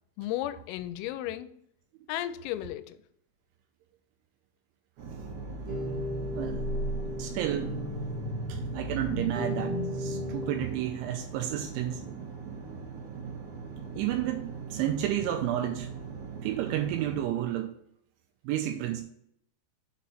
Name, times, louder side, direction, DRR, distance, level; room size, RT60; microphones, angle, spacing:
voice 1, 0.2-1.5 2.1-3.0, left 13 dB, 85° left, 3.2 m, -34 dB
sound 1, 5.0-17.3, right 5 dB, 65° right, 2.9 m, -41 dB
sound 2, 5.1-10.3, left 1 dB, 20° left, 1.9 m, -38 dB
sound 3, 5.7-10.6, equal, 40° right, 1.5 m, -36 dB
voice 2, 6.3-6.7 7.2-7.8 8.5-12.0 13.2-13.3 13.9-15.9 16.4-17.7 18.4-19.0, right 12 dB, 85° right, 2.8 m, -31 dB
7.3 x 4.3 x 4.0 m
omnidirectional pair, 5.9 m